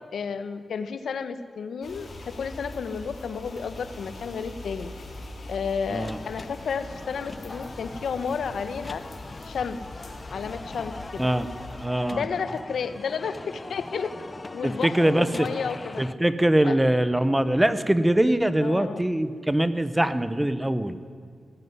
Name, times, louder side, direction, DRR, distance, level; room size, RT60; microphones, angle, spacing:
voice 1, 0.1-4.9 5.5-9.0 9.4-9.8 10.3-11.2 12.1-14.1 14.5-16.0 16.6-16.8 18.6-19.1, left 6 dB, 85° left, 12 dB, 1.2 m, -32 dB
sound 1, 1.8-11.9, left 2 dB, 50° left, 3.8 m, -42 dB
sound 2, 5.9-16.1, left 2 dB, 25° left, 0.7 m, -41 dB
voice 2, 11.7-12.2 14.6-15.5 16.0-21.0, right 1 dB, 10° right, 13 dB, 0.9 m, -23 dB
18.0 x 15.5 x 9.6 m, 2.3 s
wide cardioid pair, 140°, 0 cm